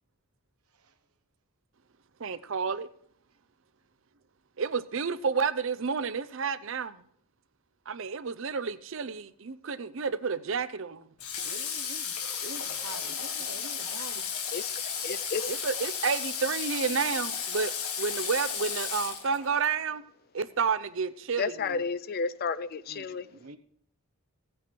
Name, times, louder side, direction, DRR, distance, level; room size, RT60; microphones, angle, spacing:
voice 1, 2.2-2.9 4.6-7.0 7.9-11.1 13.1-13.2 13.9-14.3 15.5-17.7 18.0-20.0 20.3-21.8, right 5 dB, 60° right, 14 dB, 0.6 m, -30 dB
Water / Water tap faucet, 11.2-19.7, left 7 dB, 90° left, 1.9 m, -34 dB
voice 2, 11.4-12.1 12.4-13.9 22.9-23.6, right 3 dB, 85° right, 8 dB, 1.0 m, -46 dB
voice 3, 15.0-15.5 21.4-23.3, left 5 dB, 45° left, 15 dB, 0.4 m, -31 dB
16.5 x 8.6 x 4.5 m, 0.66 s
head